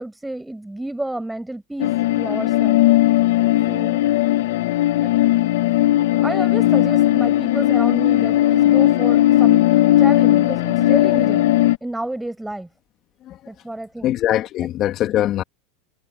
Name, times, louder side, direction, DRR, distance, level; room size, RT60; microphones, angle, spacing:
voice 1, 0.0-2.9 3.7-4.0 5.0-5.1 6.2-9.7 10.0-11.5 11.8-12.7 13.5-14.1, right 1 dB, 5° right, 7.4 m, -30 dB
sound 1, 1.8-11.8, left 14 dB, 75° left, 0.9 m, -17 dB
voice 2, 14.0-15.4, left 13 dB, 45° left, 2.2 m, -22 dB
supercardioid pair, 115°, 0 cm